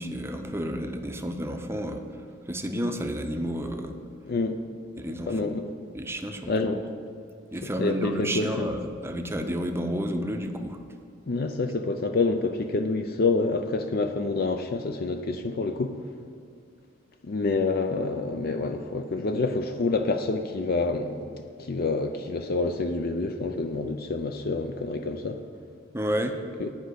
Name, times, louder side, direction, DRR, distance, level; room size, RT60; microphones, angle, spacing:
voice 1, 0.0-2.0 2.5-4.0 5.0-5.4 5.9-6.5 7.5-10.8 25.9-26.4, equal, 15° right, 5 dB, 0.6 m, -31 dB
voice 2, 4.3-4.6 5.1-5.7 6.5-6.8 7.8-8.7 11.3-16.0 17.2-25.4 26.6-26.7, left 3 dB, 50° left, 7 dB, 0.5 m, -27 dB
10.5 x 5.1 x 8.1 m, 2.4 s
head